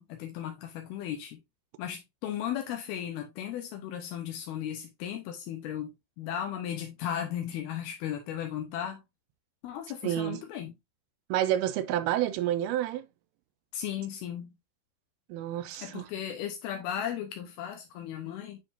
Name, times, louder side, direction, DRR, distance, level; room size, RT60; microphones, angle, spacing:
voice 1, 0.0-1.4 1.8-9.0 9.6-10.8 13.7-14.5 15.8-18.6, left 10 dB, 80° left, 2.7 m, -36 dB
voice 2, 10.0-10.4 11.3-13.1 15.3-16.1, right 12 dB, 80° right, 2.5 m, -29 dB
9.5 x 3.8 x 2.6 m
omnidirectional pair, 4.6 m